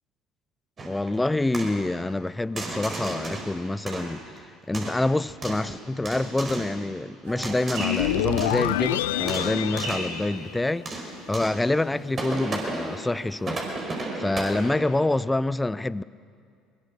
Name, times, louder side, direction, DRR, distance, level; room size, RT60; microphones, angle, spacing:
sound 1, 0.8-1.1 1.5-1.8 2.6-3.5 3.9-4.4 4.7-5.7 6.1-6.8 7.4-8.1 8.4-8.7 9.1-10.2 10.9-11.7 12.2-13.0 13.4-14.9, right 2 dB, 35° right, 5.2 m, -34 dB
voice 1, 0.9-4.2 4.7-10.9 11.3-16.0, left 2 dB, 10° left, 0.5 m, -27 dB
sound 2, 7.2-13.7, right 1 dB, 70° right, 7.5 m, -41 dB
sound 3, 7.8-11.1, left 13 dB, 80° left, 0.5 m, -27 dB
22.0 x 21.5 x 6.4 m
hypercardioid pair, 65°, 0 cm